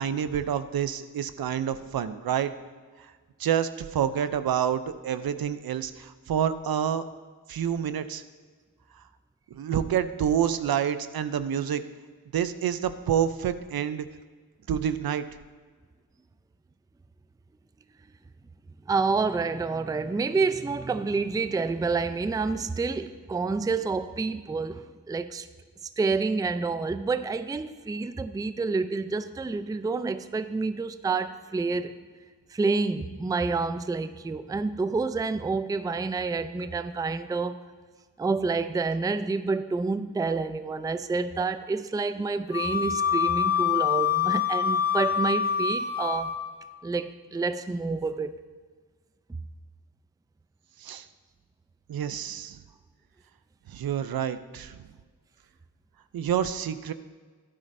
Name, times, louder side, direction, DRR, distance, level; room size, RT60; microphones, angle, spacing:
voice 1, 0.0-2.5 3.0-3.1 3.4-7.0 7.5-8.2 8.9-9.0 9.5-11.8 12.3-14.1 14.7-15.2 50.8-51.1 51.9-52.6 53.7-54.8 56.1-56.9, right 9 dB, 65° right, 0.6 m, -28 dB
voice 2, 18.9-25.5 26.0-31.9 32.5-37.6 38.2-46.4 46.8-48.4, right 4 dB, 10° right, 0.4 m, -28 dB
Wind instrument woodwind instrument, 42.5-46.6, left 8 dB, 55° left, 2.2 m, -26 dB
12.0 x 9.9 x 2.6 m
cardioid pair, 45°, 39 cm